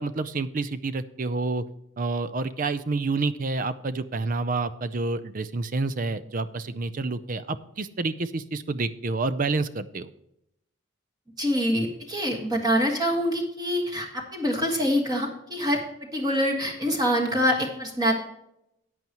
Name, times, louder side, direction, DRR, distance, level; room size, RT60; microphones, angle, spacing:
voice 1, 0.0-1.6 2.0-10.1, right 3 dB, 40° right, 14 dB, 0.5 m, -28 dB
voice 2, 11.4-15.8 16.1-18.1, equal, 20° right, 1 dB, 1.6 m, -25 dB
14.0 x 9.3 x 3.0 m, 0.80 s
head